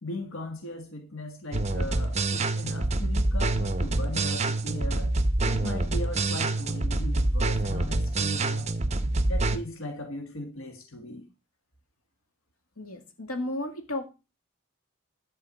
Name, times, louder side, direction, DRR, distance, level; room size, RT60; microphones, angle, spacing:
voice 1, 0.0-5.2 5.4-8.7 9.3-11.3, left 1 dB, 70° left, 1.6 m, -38 dB
sound 1, 1.5-9.6, right 2 dB, 30° right, 0.8 m, -26 dB
voice 2, 12.8-14.1, left 1 dB, 90° left, 2.2 m, -33 dB
11.5 x 4.6 x 7.8 m
head